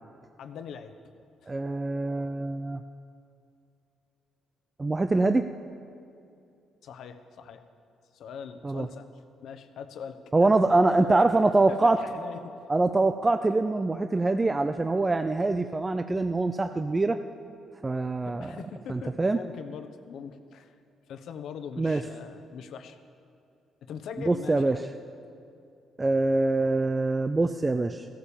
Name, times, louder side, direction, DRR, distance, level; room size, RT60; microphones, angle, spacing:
voice 1, 0.4-0.9 6.8-7.6 8.1-9.1 9.4-11.3 11.7-12.5 18.2-20.7 21.1-23.0 23.9-24.9, left 7 dB, 75° left, 9 dB, 1.1 m, -41 dB
voice 2, 1.5-2.8 4.8-5.4 8.6-8.9 10.3-12.0 12.7-17.2 17.8-18.5 18.9-19.4 21.8-22.0 24.3-24.8 26.0-28.1, right 2 dB, 20° right, 9 dB, 0.5 m, -24 dB
15.0 x 11.5 x 7.1 m, 2.6 s
cardioid pair, 90°, 0 cm